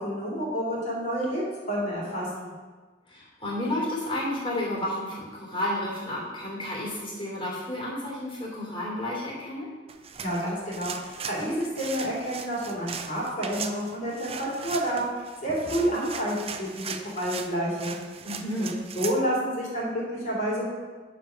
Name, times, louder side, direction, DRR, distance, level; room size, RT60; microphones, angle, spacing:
voice 1, 0.0-2.5 10.2-17.9 18.6-20.7, equal, 45° left, -4 dB, 3.2 m, -29 dB
voice 2, 3.1-9.7 18.2-18.7, left 1 dB, 30° left, -4 dB, 3.1 m, -31 dB
sound 1, 9.9-19.2, right 6 dB, 35° right, 0.5 m, -39 dB
9.2 x 5.1 x 5.8 m, 1.3 s
head